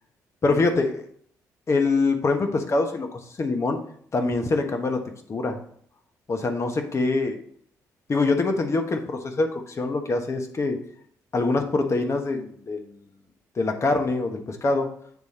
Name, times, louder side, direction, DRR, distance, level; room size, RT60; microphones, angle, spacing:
voice 1, 0.4-1.1 1.7-3.8 4.1-5.0 5.3-5.6 6.3-7.4 8.1-10.8 11.3-12.9 13.6-14.9, left 3 dB, 40° left, 5 dB, 1.2 m, -24 dB
8.3 x 3.4 x 4.3 m, 0.63 s
supercardioid pair, 60°, 7 cm